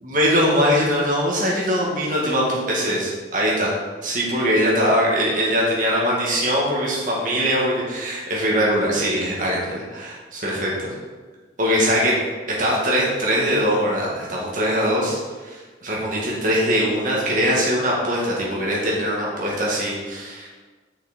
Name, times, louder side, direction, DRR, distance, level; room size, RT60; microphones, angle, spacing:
voice 1, 0.0-3.8 4.0-10.9 11.6-12.1 12.6-20.5, equal, 45° right, -4 dB, 2.0 m, -22 dB
6.6 x 5.9 x 4.3 m, 1.3 s
head